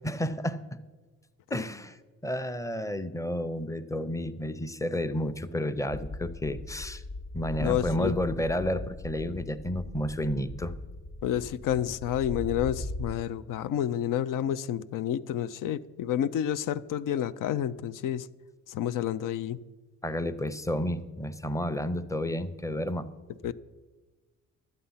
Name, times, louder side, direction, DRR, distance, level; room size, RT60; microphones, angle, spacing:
voice 1, 0.0-0.8 1.5-2.0 2.2-7.0 7.3-10.8 20.0-23.1, left 1 dB, 10° left, 0.6 m, -31 dB
sound 1, 5.9-13.1, left 2 dB, 60° left, 1.2 m, -39 dB
voice 2, 7.6-8.1 11.2-18.3 18.7-19.6 23.4-23.5, left 10 dB, 80° left, 0.5 m, -29 dB
11.5 x 8.0 x 5.6 m
cardioid pair, 85°, 32 cm